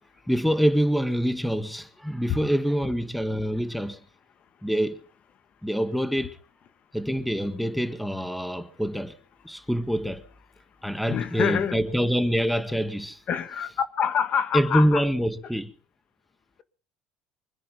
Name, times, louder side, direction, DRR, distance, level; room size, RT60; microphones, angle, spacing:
voice 1, 0.3-4.0 4.6-5.0 5.6-6.4 6.9-9.2 9.4-10.3 10.8-13.2 14.5-15.7, equal, ahead, 1.8 m, -25 dB
voice 2, 11.1-11.8 13.3-13.7 14.0-15.1, left 8 dB, 50° left, 1.5 m, -26 dB
25.0 x 10.0 x 5.2 m
hypercardioid pair, 75°, 3 cm